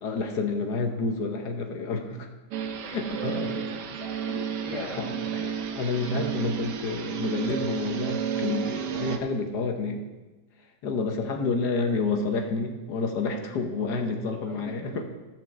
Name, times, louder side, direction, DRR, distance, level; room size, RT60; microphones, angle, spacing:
voice 1, 0.0-2.3 2.8-3.5 4.7-5.1 5.4-10.1 10.8-15.0, left 3 dB, 75° left, 4 dB, 1.6 m, -29 dB
sound 1, 2.5-9.2, right 8 dB, 80° right, 1.4 m, -32 dB
voice 2, 2.8-5.4 14.4-15.0, right 1 dB, 20° right, -3 dB, 3.1 m, -40 dB
14.0 x 5.3 x 7.1 m, 1.2 s
omnidirectional pair, 1.8 m